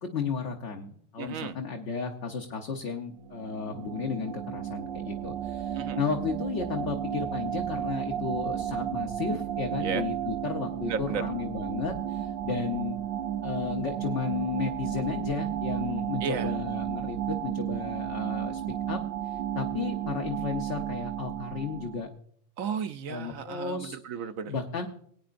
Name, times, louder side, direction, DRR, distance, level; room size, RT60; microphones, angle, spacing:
voice 1, 0.0-13.0 13.4-18.6 18.9-22.1 23.1-24.0 24.4-24.9, left 5 dB, 60° left, 2 dB, 1.3 m, -33 dB
voice 2, 1.2-1.6 5.8-6.0 9.8-10.0 10.9-11.2 16.2-16.5 22.6-24.5, right 7 dB, 80° right, 11 dB, 1.1 m, -34 dB
sound 1, 3.2-22.1, right 10 dB, 60° right, 0.7 m, -33 dB
20.0 x 9.4 x 2.5 m, 0.64 s
omnidirectional pair, 1.4 m